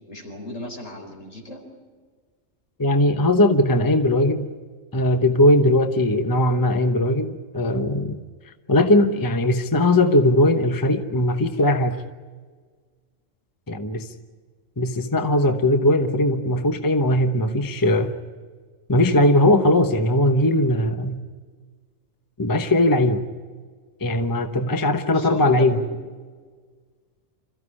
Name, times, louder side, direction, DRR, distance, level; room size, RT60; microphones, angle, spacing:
voice 1, 0.1-1.6 25.1-25.9, left 1 dB, 70° left, 2 dB, 5.1 m, -36 dB
voice 2, 2.8-4.5 4.9-8.2 8.7-12.0 13.7-14.1 14.8-18.1 18.9-21.2 22.4-23.2 24.0-25.8, left 1 dB, 15° left, 7 dB, 1.0 m, -19 dB
27.0 x 15.0 x 9.9 m, 1.5 s
omnidirectional pair, 1.4 m